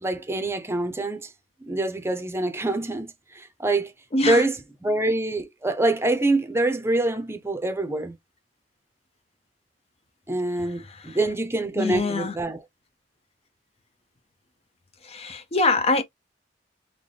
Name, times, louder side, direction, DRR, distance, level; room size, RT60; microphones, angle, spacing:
voice 1, 0.0-1.3 1.6-3.9 4.2-8.2 10.3-12.6, right 2 dB, 15° right, 0.6 m, -25 dB
voice 2, 4.1-4.4 11.0-11.2 11.8-12.3 15.0-16.0, left 3 dB, 35° left, 0.5 m, -24 dB
3.9 x 2.2 x 3.2 m
head